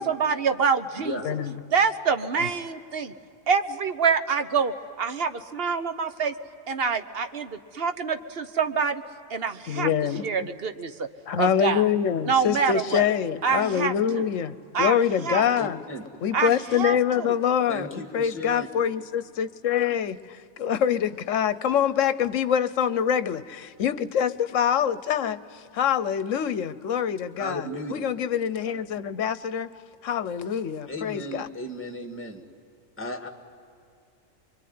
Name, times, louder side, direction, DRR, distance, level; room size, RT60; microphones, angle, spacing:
voice 1, 0.0-1.2 1.7-3.1 3.5-6.3 6.7-9.0 9.3-9.9 10.2-11.1 11.4-11.9 12.3-13.1 13.4-14.2 14.7-15.7 16.3-17.4, right 5 dB, 50° right, 9 dB, 1.2 m, -26 dB
voice 2, 9.7-10.2 11.3-15.8 16.2-25.4 25.7-29.7 30.0-31.5, left 8 dB, 70° left, 14 dB, 1.2 m, -25 dB
voice 3, 15.6-16.0 17.7-18.7 27.4-28.0 30.9-32.4 33.0-33.3, left 1 dB, 10° left, 4 dB, 2.0 m, -34 dB
25.5 x 23.5 x 9.6 m, 2.6 s
omnidirectional pair, 1.4 m